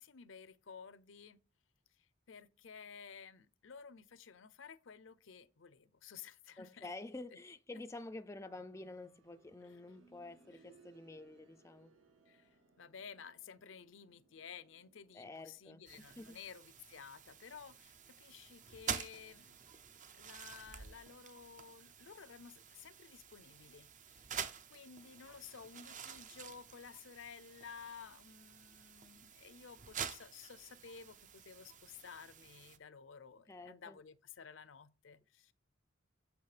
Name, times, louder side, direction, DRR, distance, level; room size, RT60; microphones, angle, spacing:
voice 1, 0.0-1.4 1.9-6.9 9.6-9.8 10.5-10.7 12.3-19.8 20.1-24.3 24.7-35.5, left 6 dB, 75° left, 0.6 m, -54 dB
voice 2, 6.6-11.9 15.1-15.8 16.2-16.4 33.5-34.0, left 2 dB, 15° left, 0.4 m, -49 dB
sound 1, 8.5-19.3 20.7-20.8, right 3 dB, 75° right, 1.7 m, -69 dB
sound 2, 15.9-32.8, right 7 dB, 40° right, 0.6 m, -48 dB
8.2 x 6.3 x 3.3 m
head